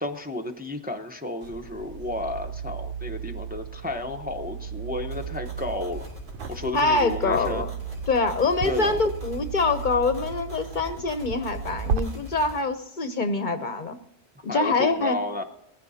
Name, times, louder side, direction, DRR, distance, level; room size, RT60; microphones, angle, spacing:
voice 1, 0.0-6.0 6.5-7.6 8.6-9.0 14.5-15.4, left 1 dB, 10° right, 4 dB, 0.7 m, -32 dB
sound 1, 1.4-12.0, right 6 dB, 60° right, 0.8 m, -35 dB
sound 2, 5.1-12.6, left 3 dB, 45° right, 2.9 m, -42 dB
voice 2, 6.7-7.7 8.1-14.0 14.4-15.2, left 3 dB, 50° left, 10 dB, 0.8 m, -25 dB
19.5 x 15.0 x 2.8 m, 0.84 s
omnidirectional pair, 1.1 m